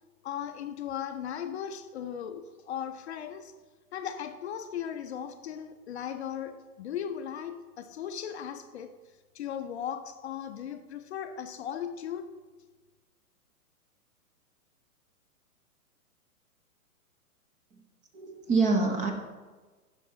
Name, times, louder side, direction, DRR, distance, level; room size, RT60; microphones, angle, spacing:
voice 1, 0.2-3.5 3.9-8.9 9.3-12.3, left 9 dB, 50° left, 9 dB, 0.6 m, -37 dB
voice 2, 18.1-19.1, right 3 dB, 15° right, 3 dB, 0.8 m, -25 dB
10.0 x 5.9 x 3.7 m, 1.3 s
hypercardioid pair, 130°, 45 cm